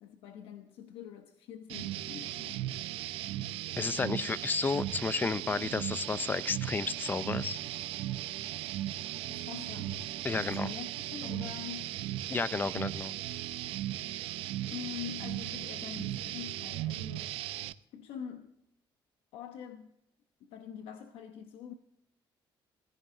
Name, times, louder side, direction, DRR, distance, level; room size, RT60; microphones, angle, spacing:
voice 1, 0.0-2.7 4.1-4.3 9.3-11.9 14.7-17.5 17.9-18.5 19.3-19.9 20.4-21.7, left 9 dB, 80° left, 1.1 m, -45 dB
sound 1, 1.7-17.7, right 14 dB, 80° right, 0.6 m, -37 dB
voice 2, 3.8-7.6 10.2-10.7 12.3-13.1, left 4 dB, 20° left, 0.4 m, -32 dB
Bowed string instrument, 6.0-11.6, right 5 dB, 25° right, 1.8 m, -57 dB
17.0 x 15.0 x 3.9 m
cardioid pair, 135°, 9 cm